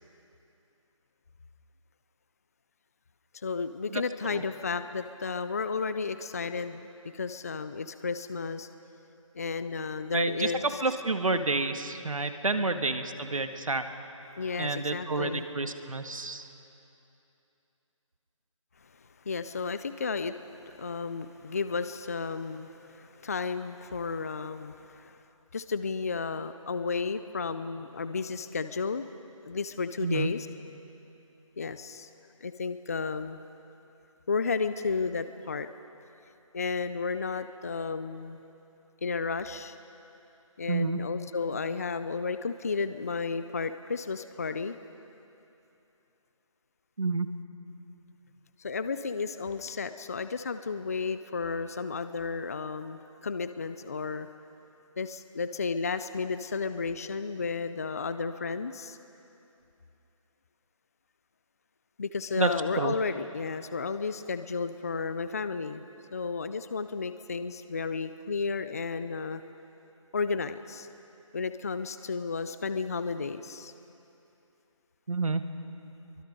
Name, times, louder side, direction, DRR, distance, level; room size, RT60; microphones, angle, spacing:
voice 1, 3.4-6.8 7.1-8.7 9.3-10.8 12.6-12.7 14.3-15.5 19.3-20.4 20.7-25.2 25.5-29.1 29.5-30.5 31.6-32.1 32.4-33.4 34.3-35.7 36.5-38.4 39.0-39.7 40.6-44.8 48.6-54.3 55.0-59.0 62.0-65.8 66.1-69.4 70.1-70.9 71.3-73.7, left 4 dB, 30° left, 11 dB, 0.5 m, -33 dB
voice 2, 10.1-10.5 10.8-13.8 14.6-16.5 30.0-30.3 40.7-41.0 47.0-47.3 62.4-62.5 62.8-62.9 75.1-75.4, right 3 dB, 80° right, 8 dB, 1.7 m, -29 dB
25.0 x 23.5 x 5.3 m, 2.8 s
figure-of-eight pair, 165°, 17 cm